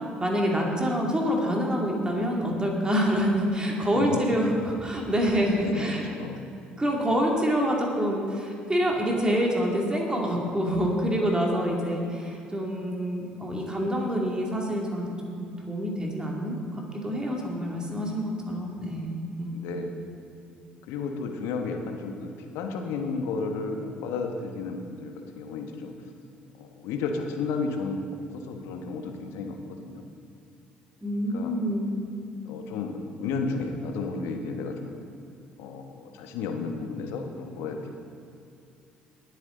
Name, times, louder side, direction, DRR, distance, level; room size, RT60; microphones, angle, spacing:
voice 1, 0.2-6.0 6.8-15.0 15.4-16.6 16.9-19.6 31.0-32.0, equal, 15° right, -1 dB, 2.5 m, -26 dB
voice 2, 5.6-6.4 19.5-20.1 20.9-25.9 26.5-28.0 28.3-30.0 31.3-31.5 32.4-34.9 35.6-37.9, left 4 dB, 70° left, 4 dB, 1.3 m, -33 dB
19.0 x 8.4 x 3.9 m, 2.5 s
hypercardioid pair, 55°, 5 cm